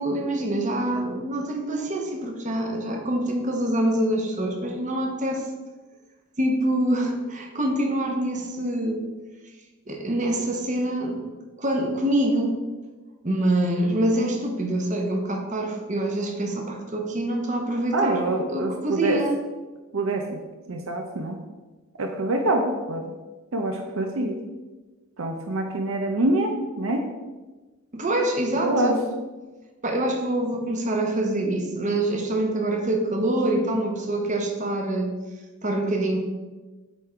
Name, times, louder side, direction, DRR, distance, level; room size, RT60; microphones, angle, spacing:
voice 1, 0.0-5.5 6.4-9.0 9.9-11.2 11.6-12.6 13.2-19.4 27.9-29.0 29.8-35.1 35.6-36.2, right 1 dB, 35° right, 2 dB, 1.0 m, -25 dB
voice 2, 17.9-19.2 19.9-20.4 20.7-21.4 22.0-23.0 23.5-24.4 25.2-27.0 28.6-28.9, right 2 dB, 65° right, 3 dB, 0.6 m, -25 dB
8.3 x 3.7 x 4.4 m, 1.2 s
head